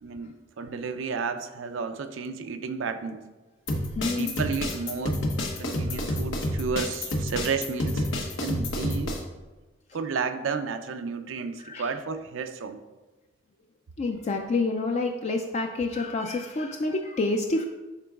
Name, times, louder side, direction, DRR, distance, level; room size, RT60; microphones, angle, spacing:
voice 1, 0.0-3.2 4.2-5.3 5.6-8.1 8.4-9.2 9.9-12.8, right 5 dB, 90° right, 9 dB, 0.5 m, -32 dB
sound 1, 3.7-9.2, left 1 dB, 80° left, 1.0 m, -29 dB
voice 2, 3.9-4.3 11.6-11.9 14.0-17.6, left 3 dB, 35° left, 4 dB, 0.3 m, -28 dB
11.5 x 3.8 x 2.3 m, 1.2 s
head